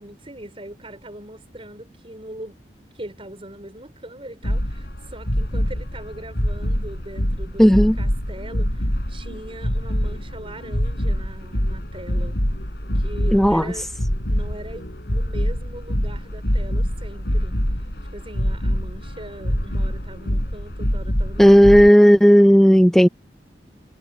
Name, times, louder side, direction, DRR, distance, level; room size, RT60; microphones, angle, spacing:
voice 1, 0.0-2.6 2.9-12.4 12.9-13.9 14.3-17.5 18.1-21.6 21.9-22.0, right 1 dB, 30° right, 5.1 m, -40 dB
sound 1, 4.4-21.9, equal, 65° left, 6.4 m, -25 dB
voice 2, 7.6-8.0 13.3-13.6 21.4-23.1, equal, ahead, 0.6 m, -12 dB
head